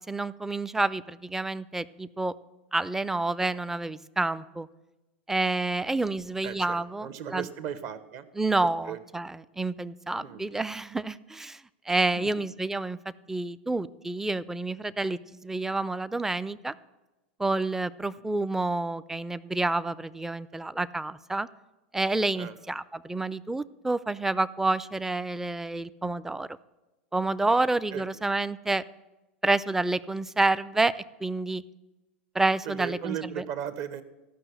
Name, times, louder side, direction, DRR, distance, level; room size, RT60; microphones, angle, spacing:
voice 1, 0.1-2.4 2.7-4.7 5.3-7.5 8.4-13.0 13.3-16.7 17.4-21.5 21.9-26.6 27.1-28.8 29.4-30.9 31.2-31.6 32.3-33.2, right 2 dB, 5° right, 17 dB, 0.4 m, -29 dB
voice 2, 6.4-8.3 8.6-9.0 10.2-10.5 12.1-12.5 22.3-22.6 27.5-27.6 27.9-28.2 32.6-34.0, right 9 dB, 50° right, 11 dB, 1.0 m, -37 dB
13.5 x 5.8 x 7.9 m, 1.0 s
hypercardioid pair, 90°, 6 cm